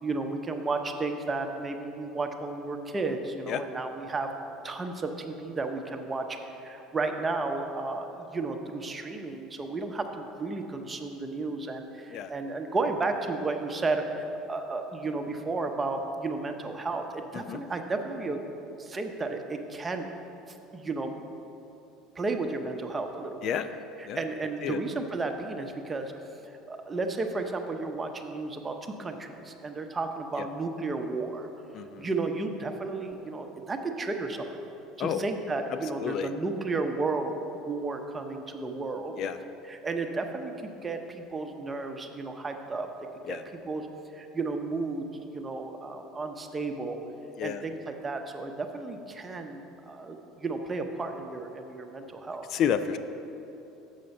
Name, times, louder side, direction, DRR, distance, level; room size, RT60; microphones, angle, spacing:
voice 1, 0.0-4.3 4.6-18.4 18.8-20.1 20.7-21.1 22.1-23.6 24.0-26.1 26.4-31.5 32.0-34.6 35.0-37.3 37.6-39.2 39.7-42.9 43.3-43.9 44.1-47.0 47.4-52.5, right 3 dB, 25° right, 5 dB, 0.7 m, -33 dB
voice 2, 31.7-32.1 35.0-35.2 36.0-36.3 39.2-39.4 43.3-43.4 47.4-47.6 52.5-53.0, left 8 dB, 55° left, 11 dB, 0.3 m, -30 dB
6.8 x 6.5 x 5.3 m, 2.9 s
supercardioid pair, 100°, 0 cm